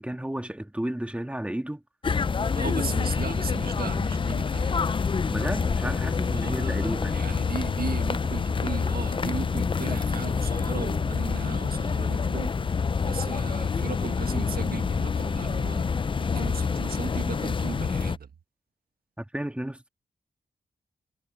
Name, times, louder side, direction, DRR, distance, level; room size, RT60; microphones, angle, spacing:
voice 1, 0.0-1.8 5.3-7.3 19.2-19.9, right 1 dB, 5° right, 2.0 m, -32 dB
sound 1, 2.0-18.2, left 5 dB, 35° left, 0.4 m, -27 dB
voice 2, 2.5-4.8 6.3-18.3, right 6 dB, 75° right, 1.4 m, -37 dB
sound 2, 7.8-14.7, right 3 dB, 40° right, 5.2 m, -49 dB
cardioid pair, 75°, 16 cm